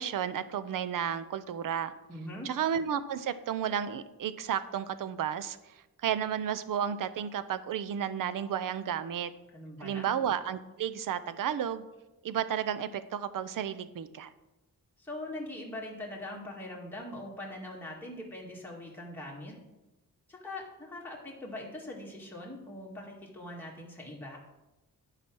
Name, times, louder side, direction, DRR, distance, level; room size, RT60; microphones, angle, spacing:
voice 1, 0.0-1.9 2.4-9.3 9.8-11.8 12.2-14.3, right 9 dB, 70° right, 14 dB, 0.7 m, -32 dB
voice 2, 2.1-2.5 9.5-10.1 15.0-19.5 20.3-24.4, left 1 dB, 5° left, -3 dB, 2.0 m, -42 dB
10.5 x 5.0 x 6.1 m, 1.0 s
wide cardioid pair, 130°, 34 cm